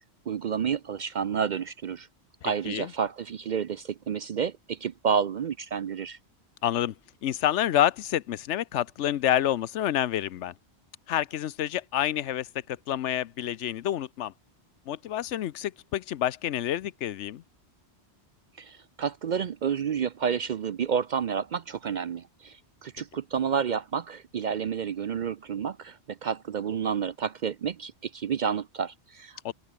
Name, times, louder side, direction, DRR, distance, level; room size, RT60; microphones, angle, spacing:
voice 1, 0.3-2.1 2.4-6.2 18.6-29.5, right 7 dB, 55° right, 0.5 m, -30 dB
voice 2, 2.4-2.9 6.6-6.9 7.2-10.5 11.1-14.3 14.9-17.4 29.4-29.5, left 11 dB, 85° left, 1.0 m, -28 dB
omnidirectional pair, 1.2 m